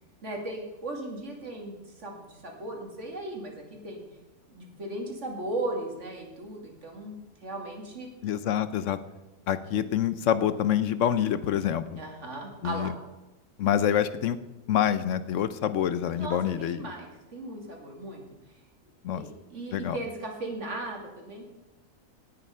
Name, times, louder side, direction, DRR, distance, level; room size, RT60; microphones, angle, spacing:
voice 1, 0.2-4.0 4.5-8.1 12.0-12.9 16.2-18.2 19.1-21.4, right 2 dB, 60° right, 1 dB, 2.7 m, -37 dB
voice 2, 8.2-9.0 9.5-12.0 12.6-12.9 13.6-14.4 14.7-16.8 19.0-19.2 19.7-20.0, left 10 dB, 70° left, 14 dB, 0.9 m, -26 dB
18.0 x 6.6 x 5.5 m, 1.1 s
omnidirectional pair, 1.4 m